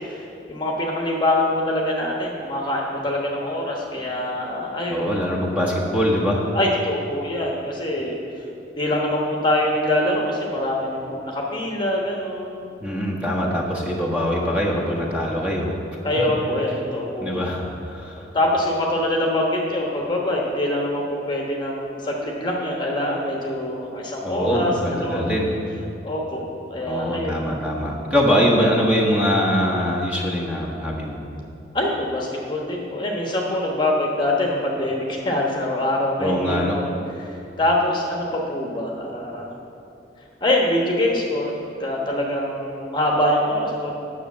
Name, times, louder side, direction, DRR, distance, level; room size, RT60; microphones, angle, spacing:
voice 1, 0.0-5.2 6.5-8.1 8.7-12.7 16.0-17.5 18.2-25.2 26.0-27.5 31.7-36.9 37.2-39.6 40.4-43.9, left 1 dB, 25° left, -1 dB, 1.2 m, -24 dB
voice 2, 4.9-6.4 12.8-15.7 17.2-18.2 24.2-25.5 26.8-31.2 36.2-36.8, equal, 10° right, -3 dB, 1.4 m, -23 dB
10.0 x 6.5 x 7.2 m, 2.8 s
head